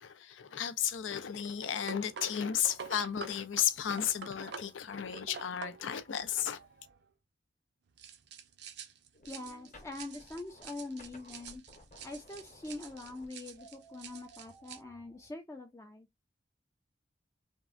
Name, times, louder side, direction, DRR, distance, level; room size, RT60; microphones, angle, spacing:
voice 1, 0.0-6.6, left 9 dB, 90° left, 0.5 m, -34 dB
sound 1, 0.8-7.0 8.0-14.8, right 6 dB, 60° right, 0.5 m, -49 dB
sound 2, 9.1-15.3, equal, 40° left, 0.9 m, -57 dB
voice 2, 9.3-11.6 12.0-16.1, left 2 dB, 15° left, 0.3 m, -44 dB
3.5 x 2.1 x 2.4 m
head